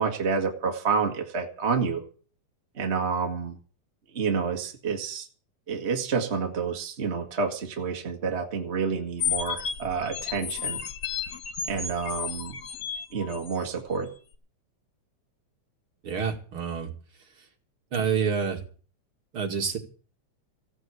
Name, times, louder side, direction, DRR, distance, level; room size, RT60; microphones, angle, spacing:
voice 1, 0.0-2.0 2.8-3.5 4.1-5.3 5.7-10.8 11.7-12.6 13.1-14.1, right 5 dB, 30° right, 3 dB, 1.4 m, -29 dB
sound 1, 9.2-13.7, left 7 dB, 60° left, 1.1 m, -32 dB
voice 2, 16.0-16.9 17.9-18.6 19.3-19.8, right 6 dB, 50° right, 3 dB, 2.8 m, -27 dB
15.5 x 7.7 x 8.3 m, 0.41 s
omnidirectional pair, 3.4 m